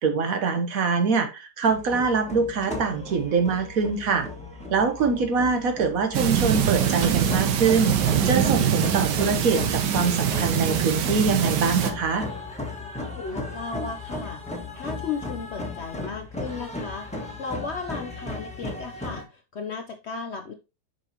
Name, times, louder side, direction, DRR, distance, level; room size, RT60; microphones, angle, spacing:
voice 1, 0.0-4.3 4.7-12.3, right 5 dB, 60° right, 7 dB, 1.2 m, -24 dB
sound 1, 1.7-19.2, left 2 dB, 5° left, 1.3 m, -36 dB
voice 2, 5.0-5.5 13.1-20.5, left 5 dB, 70° left, 5 dB, 0.6 m, -35 dB
sound 2, 6.1-11.9, right 9 dB, 80° right, 1.4 m, -24 dB
7.1 x 5.5 x 2.9 m, 0.28 s
omnidirectional pair, 1.8 m